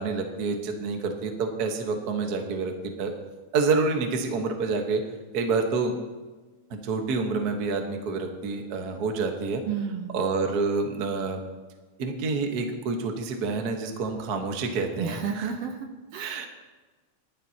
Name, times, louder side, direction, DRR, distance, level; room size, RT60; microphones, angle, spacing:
voice 1, 0.0-3.1 3.5-5.0 5.3-5.9 6.7-9.6 10.1-11.4 12.0-15.5 16.2-16.5, right 4 dB, 50° right, 4 dB, 1.2 m, -28 dB
voice 2, 9.7-10.2 15.0-16.5, right 7 dB, 70° right, 4 dB, 1.8 m, -32 dB
19.0 x 12.5 x 2.9 m, 1.3 s
omnidirectional pair, 3.3 m